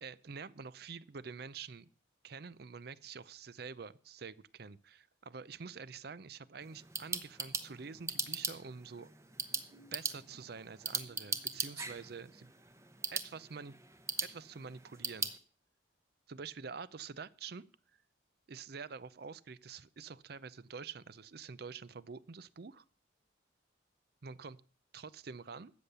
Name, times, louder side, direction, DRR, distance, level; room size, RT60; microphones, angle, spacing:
voice 1, 0.0-1.9 2.2-9.1 9.9-12.5 13.1-13.8 14.2-15.3 16.3-17.7 18.5-22.8 24.2-24.6 24.9-25.7, right 5 dB, 55° right, 18 dB, 0.5 m, -47 dB
sound 1, 6.6-15.4, right 4 dB, 15° right, 0.8 m, -40 dB
13.5 x 8.3 x 6.8 m, 0.42 s
head